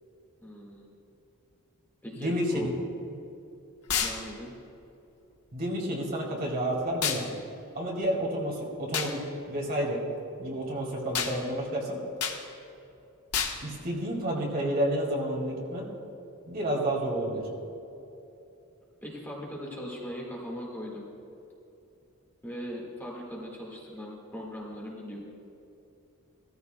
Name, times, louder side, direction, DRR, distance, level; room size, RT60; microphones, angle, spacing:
voice 1, 0.4-0.9 2.0-2.7 4.0-4.5 19.0-21.0 22.4-25.2, equal, 10° left, -4 dB, 1.7 m, -39 dB
voice 2, 2.2-2.7 5.5-7.3 7.7-10.0 10.4-12.0 13.6-15.9 16.5-17.5, right 1 dB, 45° right, -1 dB, 2.2 m, -30 dB
sound 1, 3.9-4.2 7.0-7.2 8.9-9.1 11.1-11.4 12.2-12.4 13.3-13.6, left 7 dB, 85° left, 1.1 m, -28 dB
17.0 x 14.0 x 2.2 m, 2.9 s
head